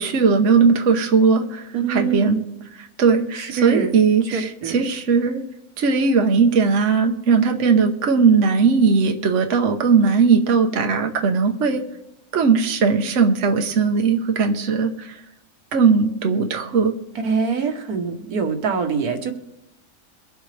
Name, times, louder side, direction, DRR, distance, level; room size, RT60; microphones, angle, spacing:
voice 1, 0.0-2.4 2.8-5.4 5.8-11.8 12.3-15.2 15.7-16.9, right 5 dB, 60° right, 4 dB, 1.2 m, -18 dB
voice 2, 1.7-2.4 3.3-3.9 4.3-4.8 17.1-19.3, right 5 dB, 80° right, 6 dB, 1.6 m, -24 dB
23.0 x 7.9 x 3.3 m, 0.86 s
omnidirectional pair, 1.6 m